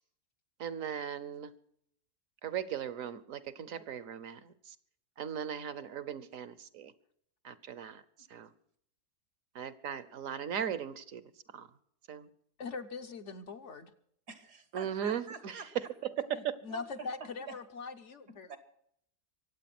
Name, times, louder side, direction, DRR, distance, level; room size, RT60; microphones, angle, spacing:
voice 1, 0.6-1.5 2.4-4.7 5.2-6.9 7.4-8.0 8.3-8.5 9.5-11.2 11.5-11.7 12.1-12.3 14.7-15.6 16.2-16.6, right 9 dB, 60° right, 16 dB, 1.3 m, -38 dB
voice 2, 12.6-13.9 16.3-18.6, left 4 dB, 55° left, 8 dB, 1.1 m, -42 dB
voice 3, 14.3-15.7 16.7-17.1 17.4-17.5 18.5-18.6, right 5 dB, 85° right, 10 dB, 2.5 m, -46 dB
24.0 x 8.6 x 6.0 m, 0.69 s
omnidirectional pair, 1.7 m